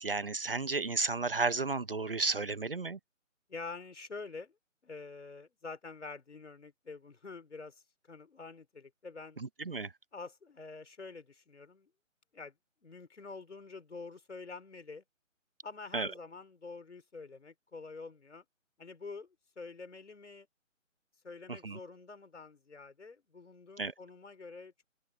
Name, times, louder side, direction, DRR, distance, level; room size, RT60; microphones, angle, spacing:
voice 1, 0.0-3.0 9.4-9.9 15.9-16.1 21.5-21.8 23.8-23.9, right 3 dB, 45° right, 1.0 m, -33 dB
voice 2, 3.5-4.5 4.8-7.8 8.1-9.4 10.1-11.9 12.3-12.5 12.8-15.0 15.6-18.4 18.8-19.3 19.6-20.5 21.2-24.8, left 4 dB, 60° left, 5.3 m, -47 dB
open air
hypercardioid pair, 180°, 40 cm